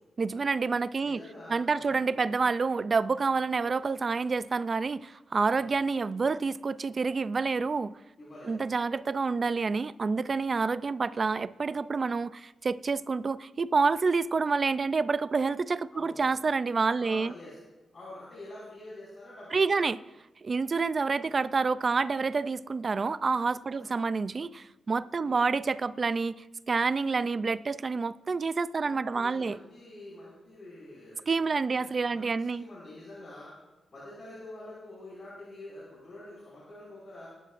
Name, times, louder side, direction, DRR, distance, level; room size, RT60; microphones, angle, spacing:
voice 1, 0.2-1.2 1.5-7.9 8.5-17.3 19.5-20.0 20.4-26.4 26.7-29.6 31.3-32.6, right 4 dB, 35° right, 0.3 m, -28 dB
voice 2, 1.0-2.0 5.5-5.7 8.2-8.6 15.9-16.2 17.0-17.6 17.9-19.9 21.2-21.3 23.7-23.9 25.0-25.4 28.8-33.5 33.9-37.3, left 1 dB, 40° left, 5.2 m, -47 dB
22.0 x 11.5 x 2.5 m
wide cardioid pair, 160°, 0 cm